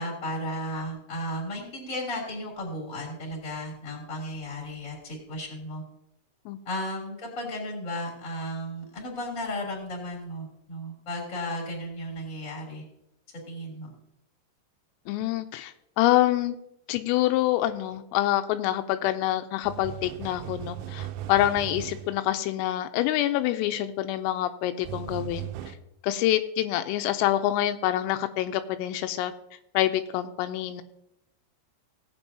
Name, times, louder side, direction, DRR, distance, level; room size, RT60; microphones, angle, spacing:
voice 1, 0.0-5.8 6.6-12.8 13.5-13.9, left 1 dB, 20° left, -2 dB, 2.5 m, -34 dB
voice 2, 15.1-16.6 16.9-25.5 26.0-29.3 29.7-30.8, left 13 dB, 85° left, 9 dB, 3.2 m, -26 dB
sound 1, 19.6-22.2 24.8-25.8, right 12 dB, 80° right, 3.1 m, -37 dB
18.0 x 8.6 x 2.8 m, 0.82 s
omnidirectional pair, 5.9 m